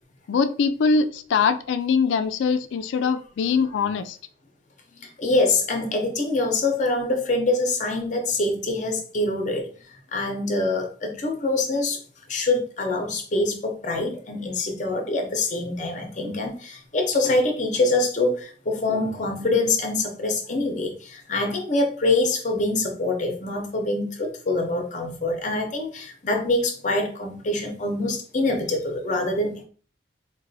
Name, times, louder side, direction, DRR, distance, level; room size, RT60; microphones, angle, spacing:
voice 1, 0.3-4.2, left 5 dB, 80° left, 10 dB, 0.3 m, -22 dB
voice 2, 5.0-9.7 10.1-12.0 12.3-29.6, left 2 dB, 40° left, 3 dB, 0.7 m, -25 dB
4.0 x 2.2 x 2.6 m, 0.42 s
head